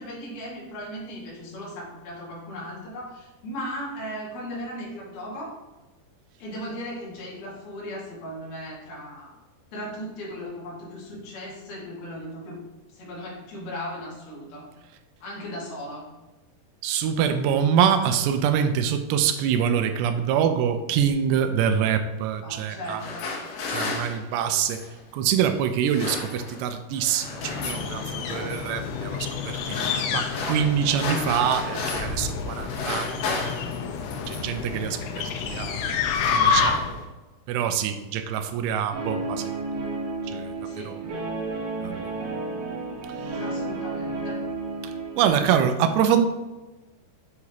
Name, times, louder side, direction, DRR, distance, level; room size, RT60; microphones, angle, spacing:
voice 1, 0.0-5.5 6.4-9.3 9.7-12.7 12.9-14.7 15.2-16.1 22.4-23.3 40.6-41.0 43.4-44.5, equal, 50° left, -6 dB, 2.9 m, -37 dB
voice 2, 16.8-23.0 23.7-24.8 25.1-29.8 30.1-33.4 34.3-35.9 36.3-36.8 37.5-39.5 40.3-40.5 40.8-41.0 41.8-42.1 43.2-43.4 45.2-46.3, right 8 dB, 90° right, 8 dB, 2.7 m, -25 dB
sound 1, 22.8-25.0 25.7-26.7 27.0-27.9 28.3-28.7 29.4-32.2 32.5-34.6 35.4-35.6 35.9-37.0, left 3 dB, 65° left, 2.6 m, -34 dB
sound 2, 27.2-37.1, left 6 dB, 85° left, 2.0 m, -29 dB
Guitar, 38.9-45.5, right 3 dB, 65° right, 1.5 m, -32 dB
8.1 x 4.7 x 2.9 m, 1.1 s
omnidirectional pair, 4.8 m